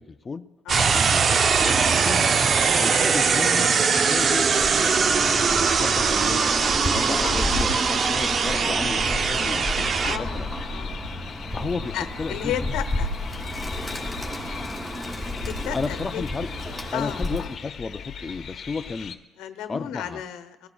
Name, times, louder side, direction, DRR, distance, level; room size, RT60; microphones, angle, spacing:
voice 1, 0.0-2.3 2.8-4.5 4.8-6.7 6.9-10.5 11.5-12.5 15.7-16.5 16.9-19.2 19.7-20.2, left 4 dB, 20° left, 8 dB, 0.4 m, -33 dB
sound 1, 0.7-10.2, right 5 dB, 35° right, 0.5 m, -21 dB
sound 2, 1.5-19.2, left 7 dB, 45° left, 0.8 m, -40 dB
Bird, 4.5-17.6, left 1 dB, 5° right, 2.6 m, -32 dB
voice 2, 10.0-10.4 10.7-10.9 11.9-13.1 15.5-16.2 16.9-17.2 19.4-20.7, left 10 dB, 75° left, 10 dB, 1.0 m, -33 dB
19.5 x 14.0 x 2.3 m, 1.1 s
cardioid pair, 130°, 0 cm